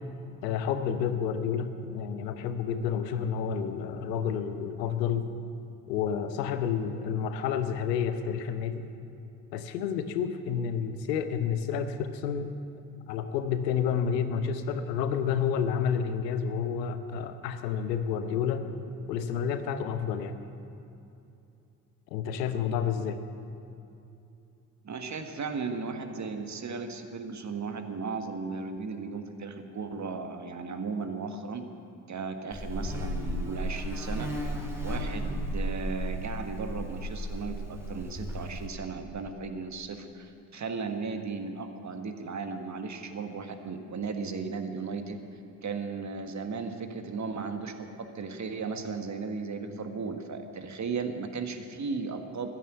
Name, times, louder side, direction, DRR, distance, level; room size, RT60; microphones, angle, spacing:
voice 1, 0.4-5.3 5.9-8.9 9.5-12.5 13.1-18.6 19.1-20.4 22.1-23.2, left 7 dB, 80° left, 9 dB, 1.0 m, -30 dB
voice 2, 24.8-31.6 32.1-45.2 45.6-52.5, right 4 dB, 35° right, 7 dB, 1.5 m, -36 dB
Buzz, 32.5-38.7, equal, 5° right, 3.3 m, -34 dB
14.0 x 10.5 x 7.9 m, 2.7 s
figure-of-eight pair, 50°, 49 cm